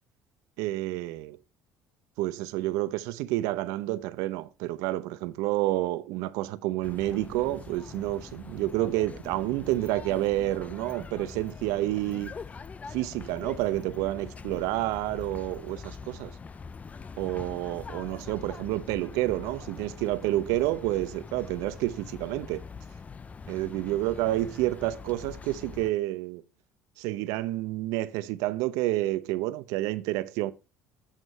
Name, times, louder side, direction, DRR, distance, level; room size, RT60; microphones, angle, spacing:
voice 1, 0.6-1.4 2.2-12.3 12.9-16.4 17.2-22.6 23.5-26.4 27.0-30.5, right 16 dB, 80° right, 0.7 m, -29 dB
sound 1, 6.8-25.9, left 5 dB, 25° left, 0.5 m, -43 dB
8.2 x 7.4 x 4.1 m
supercardioid pair, 95°, 6 cm